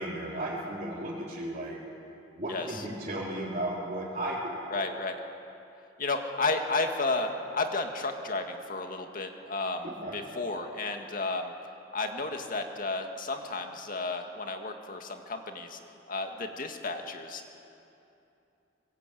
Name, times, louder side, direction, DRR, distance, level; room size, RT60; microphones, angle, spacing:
voice 1, 0.0-1.8 2.3-4.6 9.8-10.2, right 1 dB, 40° right, -8 dB, 4.0 m, -34 dB
voice 2, 2.5-2.8 4.7-5.2 6.0-11.5 11.9-15.8 16.1-17.6, left 3 dB, 50° left, 4 dB, 2.1 m, -32 dB
24.5 x 21.5 x 8.5 m, 2.8 s
head